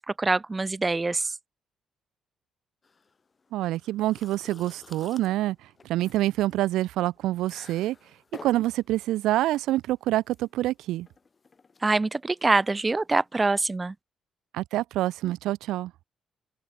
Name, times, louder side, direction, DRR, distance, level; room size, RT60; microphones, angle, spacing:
voice 1, 0.0-1.3 11.8-13.9, right 3 dB, 20° right, 0.8 m, -25 dB
sound 1, 2.8-13.8, left 4 dB, 35° left, 4.1 m, -52 dB
voice 2, 3.5-5.6 5.8-8.0 8.4-11.1 14.5-15.9, right 15 dB, 90° right, 0.5 m, -26 dB
open air
cardioid pair, 90°, 0 cm